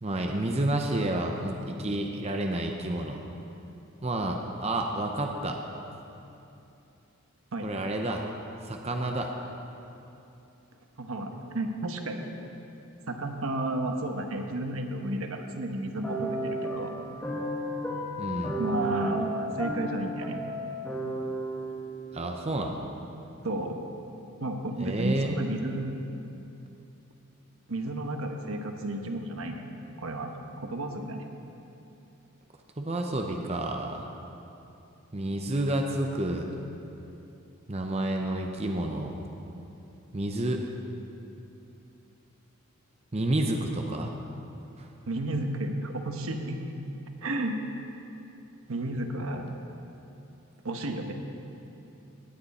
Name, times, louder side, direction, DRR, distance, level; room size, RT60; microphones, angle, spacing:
voice 1, 0.0-3.2 4.0-5.6 7.6-8.3 8.6-9.3 18.2-18.6 22.1-22.9 24.8-25.3 32.8-34.1 35.1-36.5 37.7-39.2 40.1-40.6 43.1-44.1 44.8-44.9, right 1 dB, 30° right, 2 dB, 0.7 m, -30 dB
voice 2, 11.0-12.3 13.1-17.1 18.6-20.4 23.4-23.8 24.4-26.0 27.7-29.7 30.0-30.3 30.6-31.2 45.1-46.6 47.2-47.6 48.7-49.5 50.6-51.1, right 1 dB, 75° right, 4 dB, 1.1 m, -32 dB
sound 1, 16.0-22.4, right 1 dB, 5° left, 1.6 m, -33 dB
18.0 x 9.5 x 4.2 m, 2.8 s
head